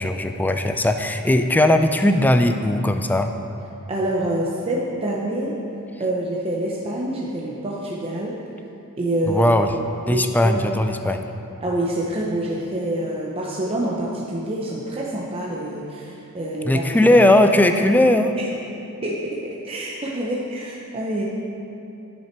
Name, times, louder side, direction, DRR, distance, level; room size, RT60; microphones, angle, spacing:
voice 1, 0.0-3.3 9.3-9.7 10.1-11.2 16.7-18.3, left 1 dB, 10° left, 7 dB, 0.3 m, -18 dB
voice 2, 3.9-5.5 6.0-8.3 9.0-9.5 10.0-10.6 11.6-16.8 18.4-18.5 19.0-19.4 19.6-21.2, right 1 dB, 25° right, -4 dB, 0.7 m, -26 dB
10.5 x 5.9 x 4.4 m, 2.9 s
head